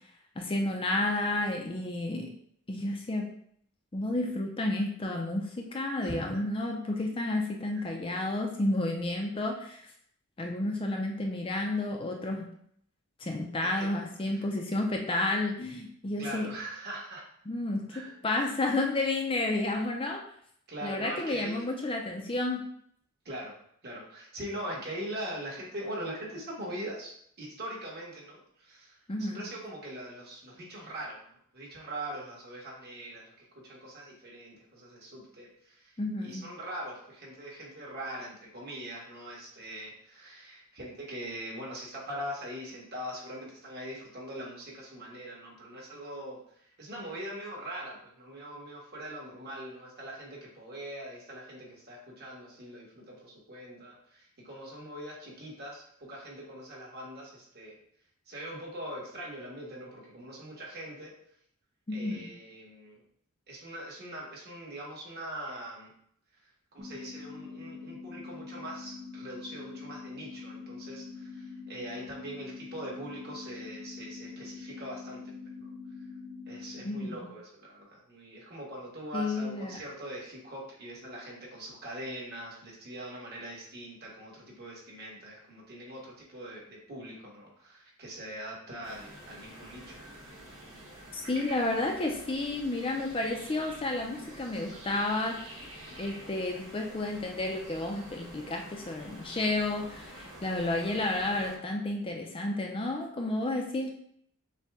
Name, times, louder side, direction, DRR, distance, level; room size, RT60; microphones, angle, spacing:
voice 1, 0.4-2.3 2.7-3.3 3.9-9.9 10.4-12.5 13.2-16.5 17.5-17.8 18.2-20.2 20.8-22.6 29.1-29.4 36.0-36.4 61.9-62.3 76.8-77.3 79.1-79.8 91.1-95.6 96.0-103.9, left 2 dB, 25° left, 1 dB, 0.5 m, -31 dB
voice 2, 6.0-6.4 7.7-7.9 13.6-13.9 14.3-14.4 16.1-17.3 17.9-18.2 20.7-21.6 23.2-23.5 23.8-31.2 31.5-57.8 58.2-61.1 61.9-63.0 63.5-65.9 66.7-75.7 76.5-90.0, right 1 dB, 50° right, -3 dB, 1.5 m, -42 dB
sound 1, 66.8-76.8, left 4 dB, 25° right, 0.8 m, -44 dB
sound 2, 88.8-101.6, right 1 dB, 90° right, 1.3 m, -48 dB
6.5 x 2.3 x 3.5 m, 0.67 s
head